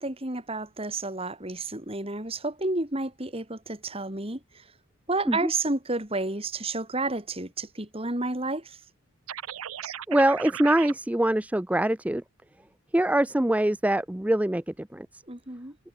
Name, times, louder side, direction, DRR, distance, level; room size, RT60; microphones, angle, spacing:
voice 1, 0.0-4.7 5.1-8.8 15.3-15.8, right 2 dB, 25° right, 2.7 m, -31 dB
sound 1, 9.3-10.9, right 9 dB, 75° right, 0.7 m, -36 dB
voice 2, 10.1-12.2 12.9-15.2, right 1 dB, 5° right, 0.4 m, -24 dB
head